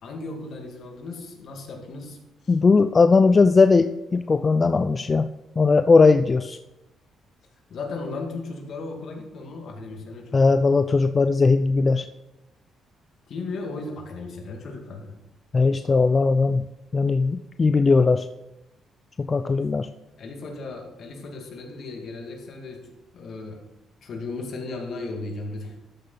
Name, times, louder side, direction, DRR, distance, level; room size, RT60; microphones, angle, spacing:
voice 1, 0.0-2.6 7.7-10.7 13.3-15.2 20.2-23.6 24.0-25.8, left 3 dB, 65° left, 2 dB, 2.1 m, -36 dB
voice 2, 2.5-5.3 5.6-6.6 10.3-12.1 15.5-16.6 16.9-18.3 19.2-19.9, left 4 dB, 30° left, 10 dB, 0.4 m, -19 dB
13.0 x 6.5 x 4.0 m, 0.94 s
cardioid pair, 90°, 0 cm